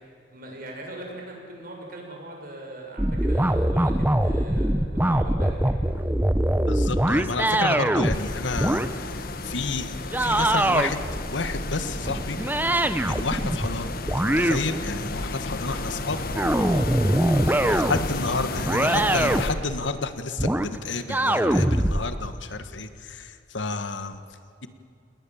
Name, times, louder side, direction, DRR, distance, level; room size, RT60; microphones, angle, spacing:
voice 1, 0.3-5.7 15.6-16.9, right 1 dB, 50° right, 0 dB, 6.1 m, -40 dB
sound 1, 3.0-8.2 8.5-8.9 10.1-13.8 14.0-15.3 16.1-18.1 18.7-19.8 20.4-20.7 21.1-22.0, right 1 dB, 10° right, 0.8 m, -23 dB
voice 2, 6.7-11.0 11.3-12.4 13.0-13.9 14.4-16.2 17.6-24.2, left 3 dB, 80° left, 10 dB, 1.4 m, -30 dB
sound 2, 8.1-19.5, left 2 dB, 50° left, 1.3 m, -32 dB
28.5 x 20.0 x 7.1 m, 2.6 s
head